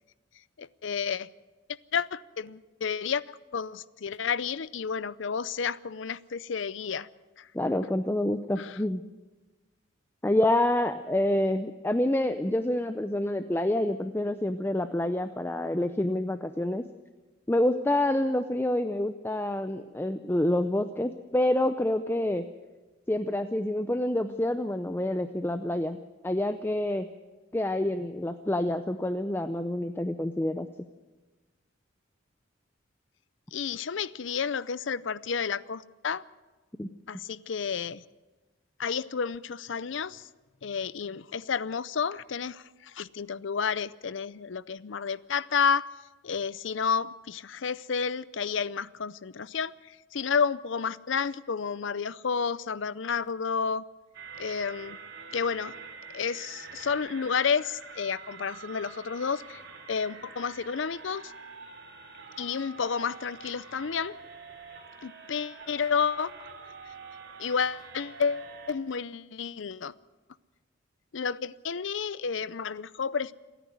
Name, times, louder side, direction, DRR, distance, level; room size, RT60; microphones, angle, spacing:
voice 1, 0.6-1.3 1.9-7.1 7.4-7.5 8.6-8.8 33.5-36.2 37.1-38.0 38.8-40.3 40.6-45.9 46.2-53.8 54.4-55.0 55.3-55.7 56.1-59.6 59.9-61.3 62.4-64.2 65.0-66.5 67.4-69.9 71.1-73.3, left 6 dB, 65° left, 18 dB, 0.6 m, -31 dB
voice 2, 7.5-9.0 10.2-16.9 17.5-22.4 23.1-26.0 26.2-27.1 27.5-30.7 36.8-36.9, left 1 dB, 10° left, 9 dB, 0.6 m, -27 dB
sound 1, 54.1-68.7, right 5 dB, 55° right, 3.5 m, -46 dB
27.5 x 10.0 x 9.4 m, 1.2 s
head